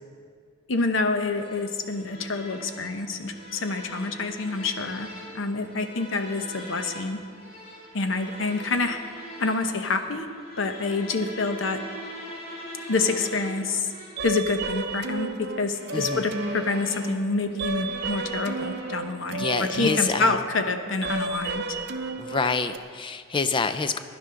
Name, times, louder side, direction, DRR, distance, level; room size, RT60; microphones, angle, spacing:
voice 1, 0.7-5.1 5.3-7.2 7.9-9.0 9.4-10.3 10.6-11.8 12.9-13.9 14.2-21.6, left 3 dB, 65° left, 7 dB, 0.8 m, -27 dB
sound 1, 1.2-19.3, equal, 50° left, 3.0 m, -43 dB
sound 2, 14.2-22.8, right 3 dB, 55° right, 0.7 m, -33 dB
voice 2, 15.9-16.2 19.4-20.4 22.2-24.0, left 4 dB, 25° left, 10 dB, 0.4 m, -27 dB
16.5 x 10.5 x 3.8 m, 2.2 s
head